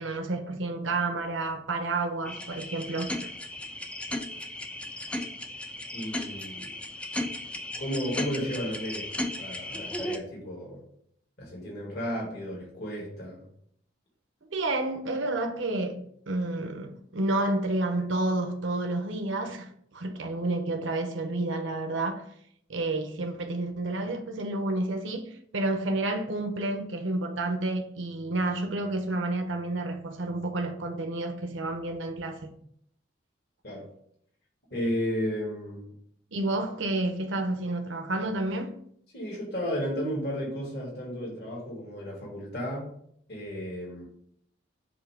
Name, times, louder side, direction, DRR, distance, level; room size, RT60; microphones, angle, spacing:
voice 1, 0.0-3.3 14.5-16.0 16.3-22.2 22.7-32.5 36.3-38.8, right 2 dB, 85° right, 0.8 m, -30 dB
sound 1, 2.2-10.2, left 1 dB, 5° left, 0.3 m, -35 dB
voice 2, 5.9-6.7 7.8-9.1 9.4-10.8 11.4-13.4 33.6-33.9 34.7-35.9 39.1-42.9 43.3-44.1, equal, 55° left, 2.0 m, -33 dB
7.1 x 2.8 x 4.8 m
head